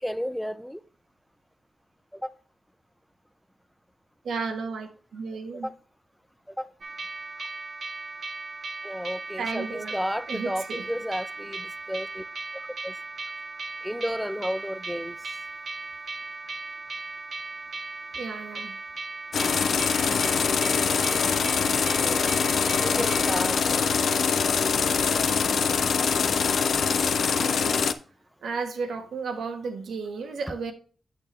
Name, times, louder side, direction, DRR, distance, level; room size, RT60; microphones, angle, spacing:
voice 1, 0.0-0.8 2.1-2.3 5.6-5.8 6.6-6.7 8.8-12.2 12.8-12.9 13.8-15.1 22.0-22.3 22.8-23.8, equal, ahead, 0.5 m, -32 dB
voice 2, 4.2-5.7 9.4-10.0 10.3-10.9 18.2-18.7 27.3-27.8 28.4-30.7, right 4 dB, 90° right, 1.3 m, -33 dB
sound 1, 6.8-23.5, right 3 dB, 55° right, 1.3 m, -37 dB
sound 2, 19.3-27.9, left 6 dB, 75° left, 0.6 m, -24 dB
9.2 x 6.4 x 3.2 m
cardioid pair, 80°, 0 cm